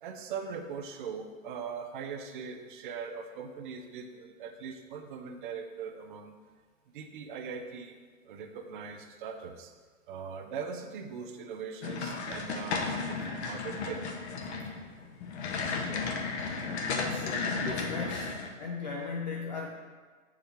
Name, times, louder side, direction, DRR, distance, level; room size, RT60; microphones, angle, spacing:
voice 1, 0.0-6.3 6.9-8.0 8.2-9.7 10.1-14.0 16.3-16.8, right 6 dB, 40° right, 6 dB, 0.5 m, -41 dB
sound 1, 11.8-18.5, left 4 dB, 50° left, 0.8 m, -34 dB
voice 2, 16.9-19.7, left 4 dB, 35° left, 0 dB, 0.4 m, -37 dB
5.8 x 4.8 x 3.3 m, 1.5 s
hypercardioid pair, 150°, 41 cm